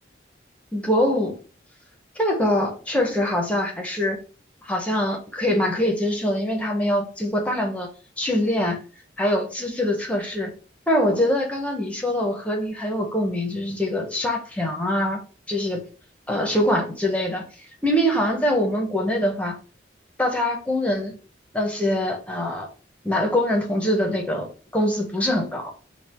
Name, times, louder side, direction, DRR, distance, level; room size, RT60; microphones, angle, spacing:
voice 1, 0.7-1.4 2.2-4.2 4.6-7.9 8.2-8.8 9.2-10.5 10.9-15.2 15.5-15.8 16.3-17.4 17.8-19.6 20.2-21.2 21.5-22.7 23.0-24.5 24.7-25.7, left 1 dB, 5° left, 1 dB, 0.9 m, -23 dB
3.9 x 2.4 x 4.3 m, 0.36 s
head